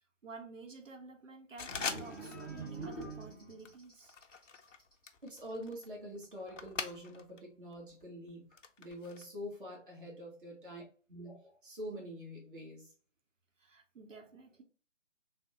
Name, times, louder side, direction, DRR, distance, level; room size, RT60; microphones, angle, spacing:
voice 1, 0.2-4.1 13.6-14.6, right 4 dB, 80° right, 0.8 m, -51 dB
sound 1, 1.6-2.5 2.8-3.1 3.6-7.4 7.7-9.2, left 5 dB, 75° left, 0.6 m, -43 dB
sound 2, 1.7-3.7, right 3 dB, 15° left, 0.6 m, -44 dB
sound 3, 2.0-5.0 5.3-5.6, equal, ahead, 1.1 m, -65 dB
voice 2, 5.2-10.8 11.1-12.9, equal, 40° right, 1.3 m, -46 dB
3.4 x 2.1 x 2.9 m
figure-of-eight pair, 145°, 38 cm